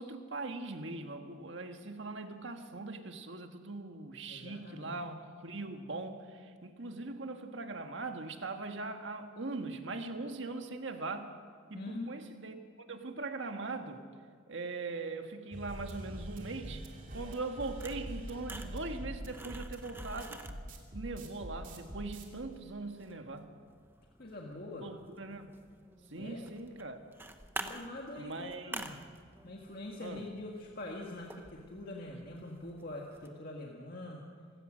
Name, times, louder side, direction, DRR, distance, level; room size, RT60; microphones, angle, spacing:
voice 1, 0.0-11.3 11.7-14.0 14.5-20.4 20.9-23.5 24.7-25.5 26.1-27.0 28.2-28.8 30.0-30.3, right 3 dB, 70° right, 6 dB, 1.6 m, -41 dB
voice 2, 4.3-5.0 11.7-12.1 24.2-24.9 26.1-26.5 27.6-29.0 29.4-34.3, left 1 dB, 50° left, -1 dB, 1.8 m, -44 dB
sound 1, 15.5-22.2, equal, 40° right, 2.8 m, -44 dB
sound 2, 16.7-33.3, right 2 dB, 10° right, 0.9 m, -50 dB
26.0 x 16.5 x 6.4 m, 2.1 s
head